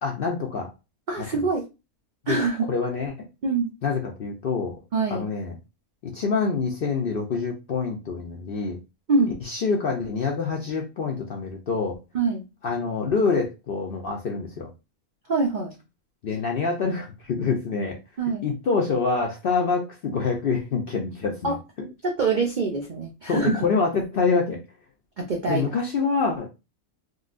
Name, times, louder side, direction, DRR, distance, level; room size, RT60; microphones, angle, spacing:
voice 1, 0.0-0.7 1.2-1.4 2.3-2.4 2.7-3.1 3.8-4.7 5.1-5.5 6.0-8.8 9.4-11.9 12.6-14.7 16.2-18.0 18.4-21.5 23.3-24.6 25.5-26.5, left 4 dB, 65° left, 0 dB, 0.5 m, -26 dB
voice 2, 1.1-1.6 2.3-2.7 3.4-3.7 4.9-5.2 9.1-9.3 12.1-12.4 15.3-15.7 18.2-18.4 21.4-21.6 22.0-23.7 25.2-25.7, right 3 dB, 80° right, 1 dB, 0.4 m, -24 dB
3.8 x 2.2 x 2.4 m, 0.27 s
omnidirectional pair, 1.5 m